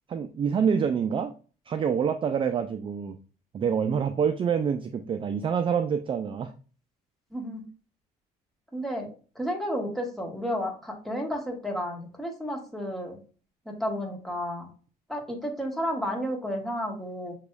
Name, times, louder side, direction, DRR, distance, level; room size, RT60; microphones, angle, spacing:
voice 1, 0.1-1.3 1.7-3.2 3.5-6.5, right 7 dB, 30° right, 8 dB, 0.4 m, -26 dB
voice 2, 7.3-7.6 8.7-9.1 9.3-13.2 13.6-14.7 15.1-17.3, equal, ahead, 0 dB, 1.4 m, -32 dB
6.5 x 3.0 x 2.3 m, 0.37 s
cardioid pair, 110°, 17 cm